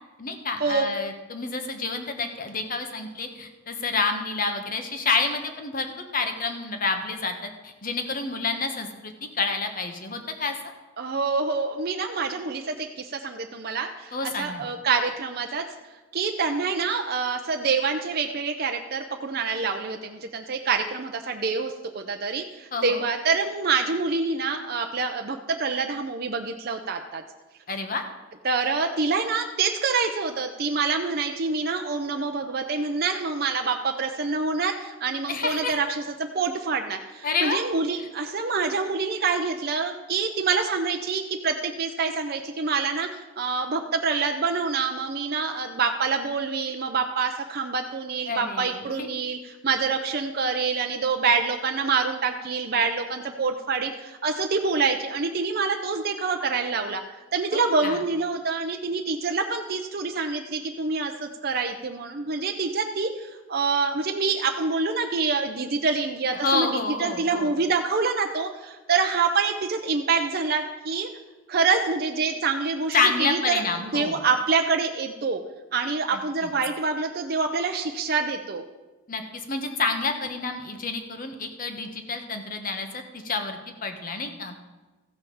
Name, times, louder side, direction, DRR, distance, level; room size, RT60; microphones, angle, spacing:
voice 1, 0.2-5.9 6.1-10.5 14.1-14.7 22.7-23.0 27.7-28.0 35.3-35.8 37.2-37.6 37.9-38.1 48.3-49.1 57.5-58.0 66.3-67.5 72.9-74.2 76.1-76.5 79.1-84.5, left 4 dB, 40° left, 6 dB, 1.2 m, -29 dB
voice 2, 11.0-15.6 16.1-27.2 28.4-35.9 36.2-57.0 57.3-71.1 71.5-73.6 73.9-75.4 75.7-78.6, right 4 dB, 50° right, 4 dB, 0.6 m, -26 dB
14.5 x 5.6 x 7.0 m, 1.2 s
head